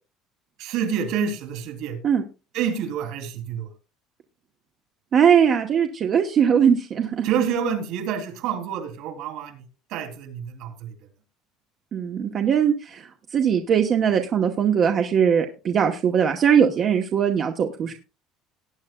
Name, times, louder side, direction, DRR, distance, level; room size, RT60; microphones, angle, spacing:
voice 1, 0.6-2.0 2.5-3.7 7.2-9.6 9.9-10.9 17.8-17.9, right 7 dB, 60° right, 5 dB, 3.1 m, -28 dB
voice 2, 5.1-7.3 11.9-17.9, right 7 dB, 35° right, 4 dB, 0.9 m, -20 dB
18.5 x 9.6 x 2.2 m, 0.31 s
cardioid pair, 170°, 0 cm